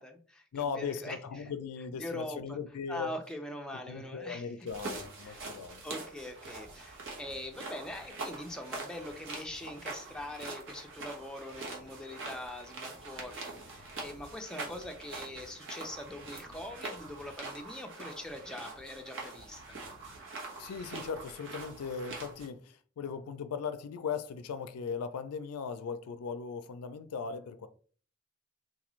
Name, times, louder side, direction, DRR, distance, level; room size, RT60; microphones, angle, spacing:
voice 1, 0.0-1.5 2.0-2.6 2.9-4.5 5.2-5.4 5.8-19.8, left 1 dB, 5° left, 0.4 m, -43 dB
voice 2, 0.5-3.1 3.7-5.8 20.6-27.7, left 6 dB, 75° left, 0.4 m, -38 dB
sound 1, 4.7-22.5, right 3 dB, 55° right, 1.1 m, -44 dB
3.8 x 2.5 x 3.0 m
head